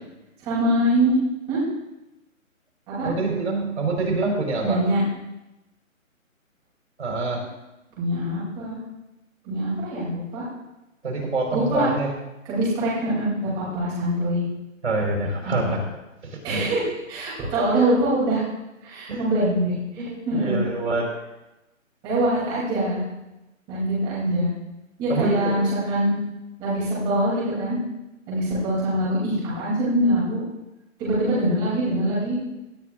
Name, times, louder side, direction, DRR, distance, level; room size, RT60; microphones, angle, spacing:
voice 1, 0.4-1.2 1.5-1.6 2.9-3.1 4.6-5.0 8.0-8.8 9.4-10.4 11.5-11.9 12.4-14.4 15.6-15.7 16.4-18.4 18.8-20.6 22.0-23.0 23.7-24.5 25.0-26.2 26.6-27.8 28.3-30.4 31.0-32.4, right 1 dB, 10° right, -9 dB, 3.2 m, -23 dB
voice 2, 3.0-4.8 7.0-7.4 11.0-12.1 14.8-15.8 16.5-16.8 19.1-19.3 20.0-21.1 25.1-25.5, right 3 dB, 60° right, -1 dB, 4.8 m, -25 dB
18.0 x 11.5 x 2.6 m, 0.96 s
hypercardioid pair, 170°, 41 cm